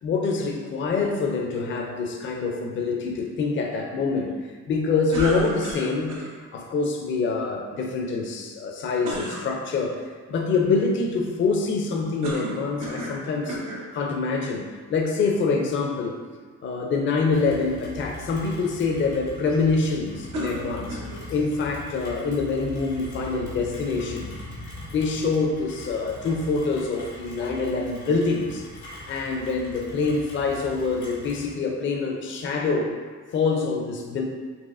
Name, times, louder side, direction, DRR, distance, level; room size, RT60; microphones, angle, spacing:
voice 1, 0.0-6.1 6.5-10.0 10.3-13.6 13.9-16.2 16.6-21.0 21.3-24.3 24.9-28.7 29.1-32.9 33.3-34.2, left 4 dB, 40° left, 1 dB, 0.4 m, -25 dB
sound 1, 5.1-6.3 9.0-9.5 12.2-13.2 13.5-13.9 14.7-14.8 20.3-21.2, right 1 dB, 85° right, 0.8 m, -32 dB
Rain, 17.3-31.5, left 2 dB, 90° left, 1.4 m, -41 dB
4.1 x 2.9 x 2.4 m, 1.5 s
cardioid pair, 90°, 30 cm